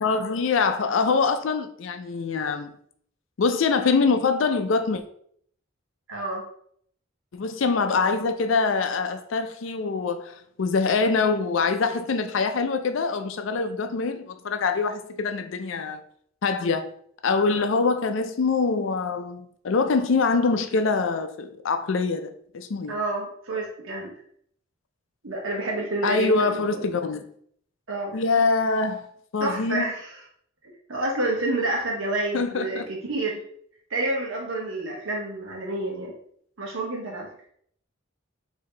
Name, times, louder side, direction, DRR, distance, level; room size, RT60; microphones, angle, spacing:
voice 1, 0.0-2.7 3.4-5.0 7.3-16.0 16.4-16.9 17.2-22.3 22.5-23.0 26.0-27.2 28.1-29.1 29.3-29.9 32.3-32.9, left 4 dB, 70° left, 0.4 m, -24 dB
voice 2, 6.1-6.4 22.9-24.1 25.2-26.8 27.9-28.2 29.4-30.2 30.9-33.4 33.9-36.1 36.6-37.3, right 2 dB, 80° right, 0.9 m, -29 dB
4.7 x 2.8 x 3.3 m
head